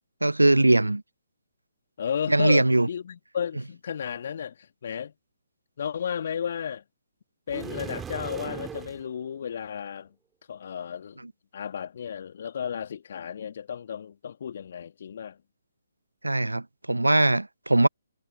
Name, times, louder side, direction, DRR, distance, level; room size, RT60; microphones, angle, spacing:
voice 1, 0.2-1.0 2.3-2.9 16.2-17.9, right 2 dB, 80° right, 0.9 m, -21 dB
voice 2, 2.0-5.1 5.8-6.8 7.5-10.1 10.5-11.2 11.5-15.4, left 8 dB, 50° left, 2.5 m, -33 dB
sound 1, 7.5-9.0, right 7 dB, 10° right, 3.0 m, -38 dB
figure-of-eight pair, 135°, 0 cm